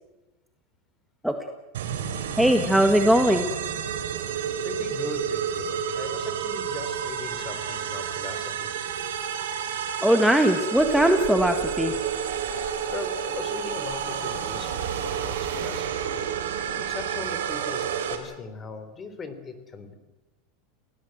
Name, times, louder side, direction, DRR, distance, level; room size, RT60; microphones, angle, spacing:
sound 1, 1.7-18.2, right 8 dB, 90° right, 3.7 m, -30 dB
voice 1, 2.4-3.5 10.0-12.0, equal, ahead, 5 dB, 1.6 m, -20 dB
voice 2, 4.6-8.7 12.9-16.2 16.8-20.0, left 4 dB, 25° left, 10 dB, 3.5 m, -39 dB
sound 2, 10.7-15.9, right 9 dB, 50° right, 3.4 m, -43 dB
28.5 x 18.0 x 7.8 m, 1.1 s
supercardioid pair, 130°, 0 cm